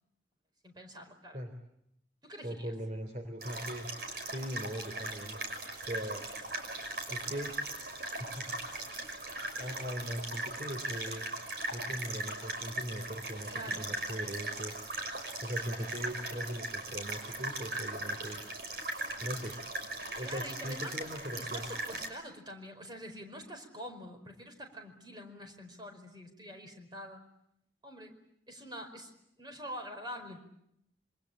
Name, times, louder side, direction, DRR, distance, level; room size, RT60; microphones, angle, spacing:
voice 1, 0.6-1.4 2.2-2.7 13.5-14.0 20.2-21.0 21.4-27.2 27.8-28.2 28.5-29.1 29.4-30.4, equal, 25° right, 4 dB, 4.9 m, -45 dB
voice 2, 2.4-3.9 4.2-5.4 5.8-6.3 7.1-7.5 8.2-8.5 9.6-11.3 11.7-14.7 15.4-18.4 19.2-19.6 20.1-21.6, equal, 40° right, 5 dB, 3.3 m, -40 dB
sound 1, 3.4-22.1, right 2 dB, 60° right, 5.7 m, -39 dB
27.0 x 25.0 x 8.7 m, 0.77 s
head